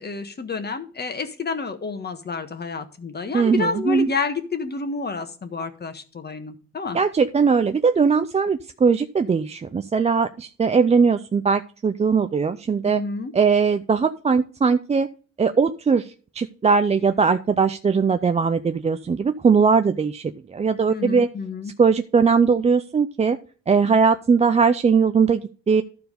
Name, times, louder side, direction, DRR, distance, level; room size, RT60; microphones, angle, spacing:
voice 1, 0.0-7.0 12.9-13.3 20.9-21.7, left 4 dB, 35° left, 8 dB, 1.4 m, -29 dB
voice 2, 3.3-4.1 6.9-13.0 13.3-15.1 15.4-21.3 21.8-23.4 23.7-25.8, right 5 dB, 20° right, 9 dB, 0.4 m, -20 dB
12.5 x 4.6 x 5.3 m, 0.40 s
cardioid pair, 90°, 30 cm